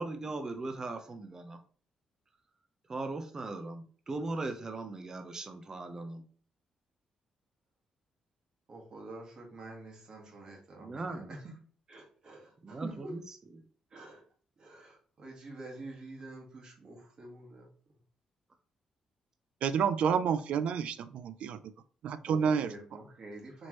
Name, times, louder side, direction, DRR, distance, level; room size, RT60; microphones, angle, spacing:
voice 1, 0.0-1.6 2.9-6.2 10.8-11.3 12.6-13.2, right 2 dB, 30° right, 6 dB, 0.6 m, -38 dB
voice 2, 8.7-11.6 11.9-13.2 13.9-14.2 14.6-17.7 22.3-23.7, right 2 dB, 45° right, 0 dB, 1.5 m, -47 dB
voice 3, 19.6-21.6 22.0-22.7, right 7 dB, 75° right, 13 dB, 0.4 m, -29 dB
4.3 x 3.1 x 3.0 m, 0.43 s
cardioid pair, 115°, 2 cm